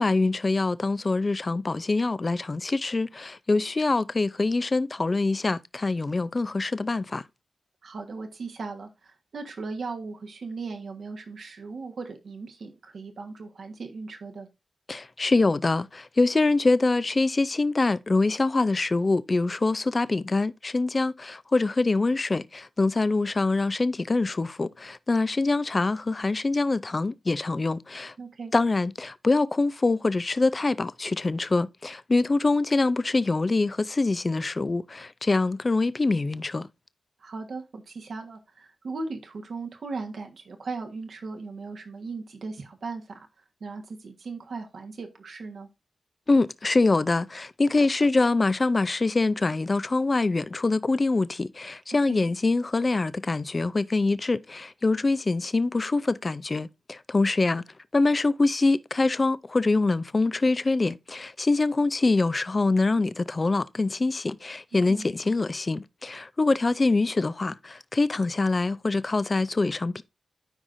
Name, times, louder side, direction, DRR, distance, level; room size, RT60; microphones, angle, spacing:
voice 1, 0.0-7.2 14.9-28.1 28.5-36.7 46.3-57.6 57.9-70.0, left 3 dB, 45° left, 0.5 m, -24 dB
voice 2, 7.8-14.5 28.2-28.5 37.2-45.7 52.1-52.2 64.9-65.1, right 4 dB, 75° right, 1.4 m, -38 dB
12.5 x 4.9 x 2.6 m
cardioid pair, 40°, 0 cm